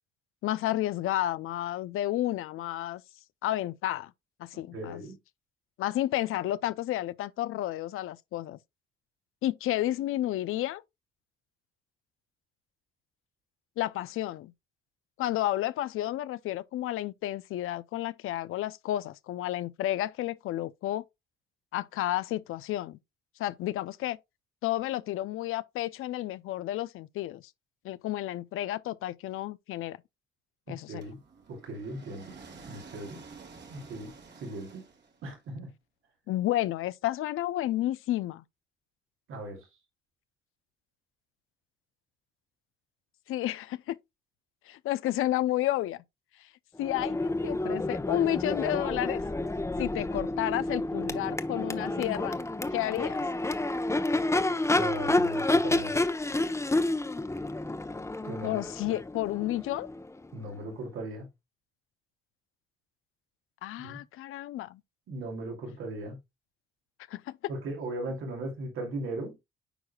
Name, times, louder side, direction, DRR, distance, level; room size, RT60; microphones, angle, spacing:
voice 1, 0.4-3.0 3.4-4.1 4.4-5.0 5.8-8.6 9.4-10.8 13.8-14.5 15.2-21.0 21.7-23.0 23.4-24.2 24.6-27.4 27.8-30.0 30.7-31.0 36.3-38.4 43.3-44.0 44.7-46.0 46.4-46.5 46.8-49.2 49.8-52.4 52.7-53.3 58.4-59.9 63.6-64.8 67.1-67.5, left 14 dB, 80° left, 0.6 m, -31 dB
voice 2, 4.5-5.1 30.7-31.2 31.5-32.4 32.7-33.2 33.7-34.8 35.2-35.7 39.3-39.6 54.7-56.0 58.2-58.6 60.3-61.3 63.8-64.0 65.1-66.2 67.5-69.4, right 2 dB, 75° right, 2.8 m, -38 dB
sound 1, 31.0-35.4, right 4 dB, 55° right, 2.2 m, -50 dB
Crowd / Race car auto racing / Accelerating revving vroom, 46.8-60.6, left 2 dB, 15° left, 0.9 m, -30 dB
8.9 x 4.8 x 2.3 m
cardioid pair, 75°, 21 cm